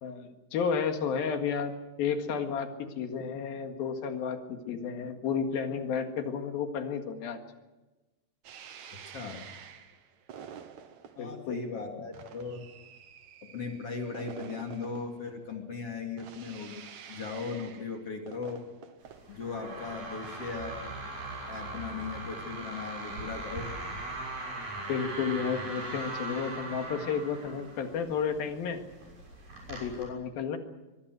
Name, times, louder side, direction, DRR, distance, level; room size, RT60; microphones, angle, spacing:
voice 1, 0.0-7.4 11.2-11.7 24.9-28.8 29.7-30.6, left 6 dB, 80° left, 5 dB, 3.7 m, -32 dB
sound 1, 8.4-20.6, right 8 dB, 60° right, 2.6 m, -49 dB
voice 2, 9.0-9.4 11.2-12.7 13.4-18.7 19.3-20.8 21.5-23.7, left 4 dB, 45° left, 2 dB, 3.4 m, -38 dB
sound 2, 19.0-30.0, right 2 dB, 75° right, 8.6 m, -40 dB
23.5 x 23.5 x 6.5 m, 1.1 s
omnidirectional pair, 4.2 m